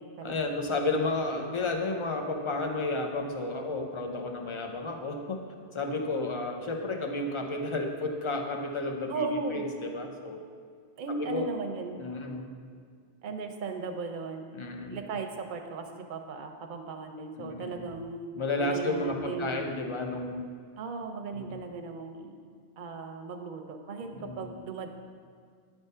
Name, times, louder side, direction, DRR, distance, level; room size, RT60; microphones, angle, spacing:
voice 1, 0.2-5.4 5.7-9.3 9.5-10.5 11.2-11.5 12.0-12.5 14.5-15.0 17.4-17.9 18.3-20.4 21.3-21.6 24.1-24.6, left 2 dB, 35° left, 3 dB, 0.6 m, -32 dB
voice 2, 9.1-9.7 11.0-12.0 13.2-14.4 14.9-18.3 18.6-19.7 20.8-22.4 22.8-24.9, right 4 dB, 55° right, 4 dB, 0.8 m, -36 dB
9.4 x 3.6 x 5.4 m, 2.1 s
omnidirectional pair, 1.1 m